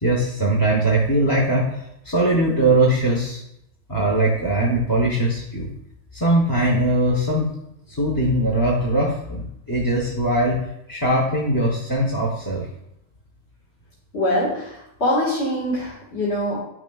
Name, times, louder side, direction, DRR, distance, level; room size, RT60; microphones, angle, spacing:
voice 1, 0.0-3.4 3.9-5.7 6.1-7.5 7.9-12.7, right 1 dB, 20° left, -3 dB, 0.8 m, -21 dB
voice 2, 14.1-16.6, left 1 dB, 60° left, -6 dB, 1.9 m, -23 dB
9.8 x 6.0 x 2.3 m, 0.79 s
omnidirectional pair, 1.3 m